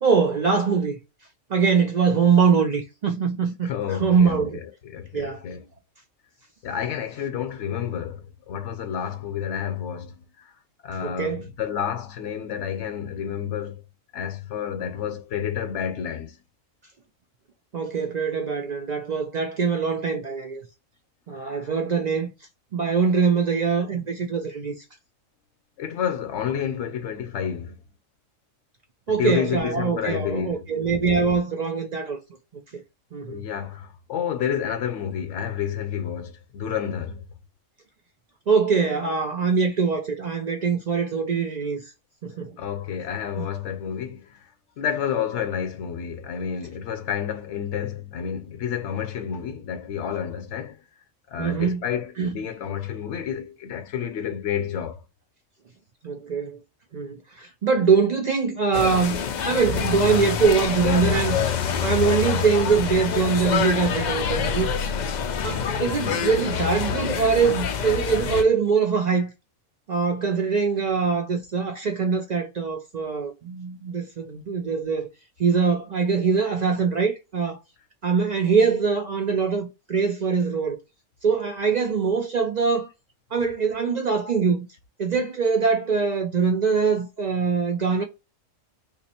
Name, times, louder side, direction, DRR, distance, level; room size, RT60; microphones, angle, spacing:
voice 1, 0.0-1.0 1.5-3.7 4.0-4.6 5.1-5.4 11.0-11.4 17.7-20.6 21.3-22.3 22.7-24.8 29.1-32.2 32.5-32.8 33.1-33.5 38.5-41.8 42.2-42.6 43.4-43.5 51.4-51.8 52.2-52.3 56.0-56.6 56.9-61.4 61.8-64.7 65.4-69.3 69.9-75.1 75.4-77.6 78.0-80.8 81.2-82.9 83.3-84.7 85.0-88.0, right 5 dB, 65° right, 0.4 m, -23 dB
voice 2, 3.6-4.4 4.8-5.7 6.6-10.5 10.8-13.8 14.1-16.4 21.4-21.7 25.8-27.8 29.1-30.7 33.2-37.2 42.6-44.5 44.8-50.8 51.3-55.0, left 8 dB, 65° left, 1.0 m, -30 dB
sound 1, 58.7-68.4, left 7 dB, 90° left, 0.4 m, -26 dB
2.9 x 2.4 x 4.2 m
omnidirectional pair, 1.3 m